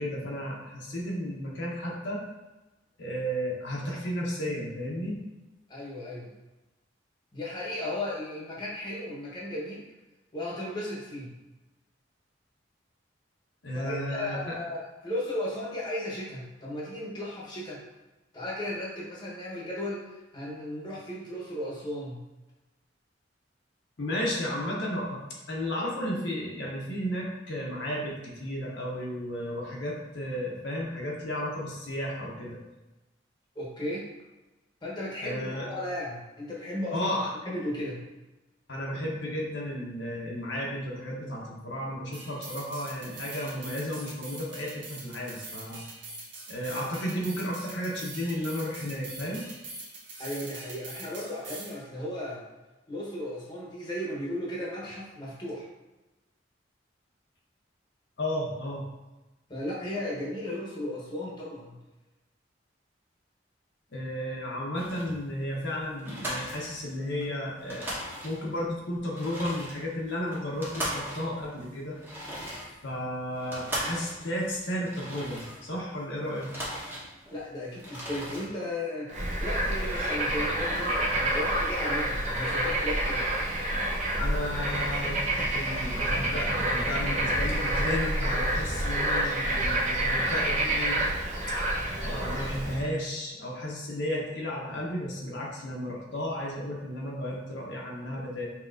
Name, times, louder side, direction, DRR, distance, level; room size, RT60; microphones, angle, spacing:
voice 1, 0.0-2.2 3.0-5.2 13.6-14.6 24.0-25.2 25.5-32.6 35.2-35.7 36.9-37.3 38.7-45.8 46.5-49.5 58.2-58.8 63.9-67.9 68.2-72.0 72.8-76.5 84.1-85.2 85.5-91.0 91.9-98.5, equal, 70° left, -3 dB, 0.8 m, -33 dB
voice 2, 5.7-6.3 7.3-9.8 10.3-11.3 13.7-17.8 18.3-22.2 33.5-34.1 34.8-37.1 37.5-38.0 50.2-52.4 52.9-55.7 59.5-61.8 77.3-79.1 79.4-83.2, left 1 dB, 25° left, -4 dB, 1.0 m, -35 dB
sound 1, 42.1-51.8, right 3 dB, 80° right, 1.1 m, -43 dB
sound 2, 64.8-65.2 65.6-65.7 66.0-67.3 67.5-68.6 69.0-75.9 76.2-77.4 77.7-78.5, equal, 10° right, 1.0 m, -38 dB
Bird / Frog, 79.1-92.9, right 1 dB, 40° right, 0.8 m, -28 dB
5.6 x 2.9 x 2.5 m, 1.1 s
head